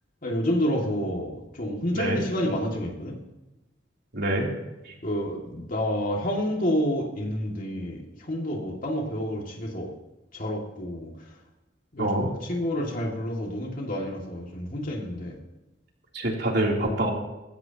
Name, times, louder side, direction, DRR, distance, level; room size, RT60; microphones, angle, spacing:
voice 1, 0.2-3.2 5.0-8.0 8.3-9.9 10.3-11.1 11.9-15.3 16.8-16.9, equal, 45° left, -1 dB, 2.3 m, -29 dB
voice 2, 4.1-4.5 4.9-5.0 12.0-12.3 16.1-17.1, right 1 dB, 60° right, -1 dB, 3.2 m, -25 dB
21.0 x 16.0 x 3.0 m, 1.0 s
head